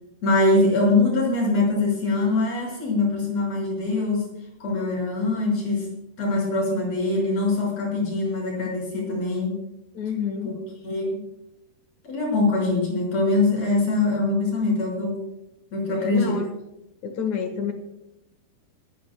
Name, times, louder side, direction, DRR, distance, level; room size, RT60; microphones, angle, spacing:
voice 1, 0.2-4.3 4.6-5.9 6.2-9.6 10.4-10.5 10.8-11.3 12.0-15.2 15.7-16.4, left 2 dB, 40° left, -1 dB, 7.0 m, -23 dB
voice 2, 9.9-10.6 15.9-16.6 17.0-17.7, left 6 dB, 60° left, 6 dB, 2.3 m, -28 dB
25.0 x 14.5 x 2.3 m, 0.91 s
omnidirectional pair, 4.6 m